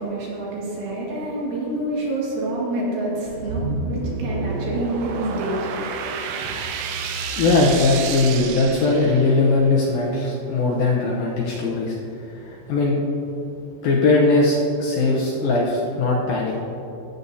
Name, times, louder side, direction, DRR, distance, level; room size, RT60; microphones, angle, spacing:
voice 1, 0.0-6.6, right 1 dB, 65° right, -5 dB, 3.5 m, -28 dB
sound 1, 3.3-9.6, right 4 dB, 80° right, 2.6 m, -29 dB
voice 2, 7.4-13.0 13.8-16.5, left 3 dB, 75° left, -3 dB, 2.3 m, -20 dB
14.5 x 8.4 x 2.7 m, 3.0 s
omnidirectional pair, 5.0 m